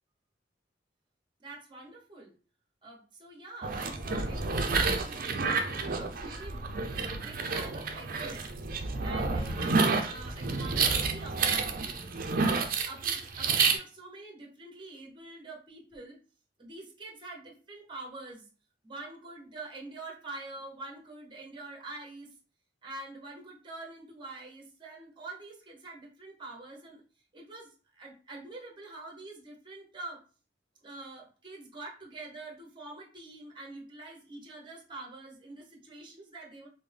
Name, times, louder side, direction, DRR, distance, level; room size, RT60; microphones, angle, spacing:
voice 1, 1.4-2.3 2.8-12.0 12.3-16.2 16.6-18.4 18.8-22.3 22.8-27.0 27.3-30.2 30.8-36.7, right 2 dB, 25° right, -1 dB, 0.9 m, -46 dB
sound 1, 3.6-13.8, right 4 dB, 50° right, 0.5 m, -29 dB
3.4 x 2.1 x 3.3 m, 0.37 s
head